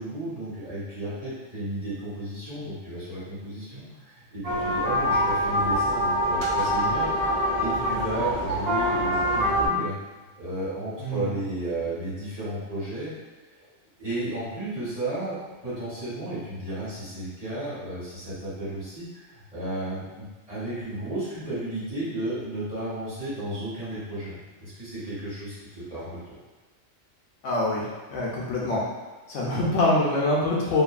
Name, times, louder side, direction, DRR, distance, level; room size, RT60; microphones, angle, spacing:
voice 1, 0.0-9.9 10.4-13.1 13.6-13.7 14.0-26.4, right 1 dB, 30° right, -12 dB, 1.5 m, -33 dB
sound 1, 4.4-9.7, equal, 70° right, 0.4 m, -25 dB
voice 2, 11.0-11.3 27.4-28.8 29.3-30.8, left 2 dB, 75° left, -4 dB, 0.9 m, -25 dB
2.8 x 2.6 x 2.4 m, 1.2 s
omnidirectional pair, 1.3 m